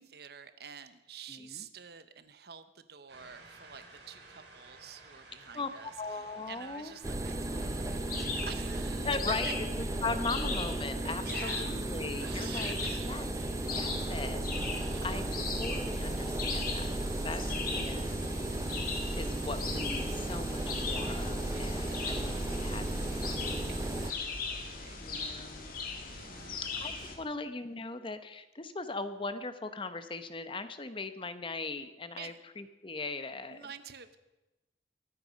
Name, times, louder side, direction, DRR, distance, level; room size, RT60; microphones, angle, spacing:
voice 1, 0.0-9.1 9.4-9.5 11.2-11.8 12.2-13.4 14.6-15.3 17.1-17.9 21.5-22.1 23.7-26.8 32.2-32.4 33.5-34.2, right 7 dB, 60° right, 12 dB, 0.9 m, -49 dB
voice 2, 1.3-1.6 5.5-5.7 6.0-6.9 9.0-12.8 13.0-13.3 13.5-18.1 19.2-23.6 25.0-25.7 26.3-33.7, left 3 dB, 30° left, 10 dB, 0.9 m, -39 dB
sound 1, 3.1-18.6, right 2 dB, 80° right, 5.5 m, -58 dB
sound 2, 7.0-24.1, right 1 dB, 20° right, 0.6 m, -35 dB
sound 3, 7.4-27.2, left 4 dB, 55° left, 2.0 m, -40 dB
23.5 x 8.8 x 5.2 m, 1.0 s
head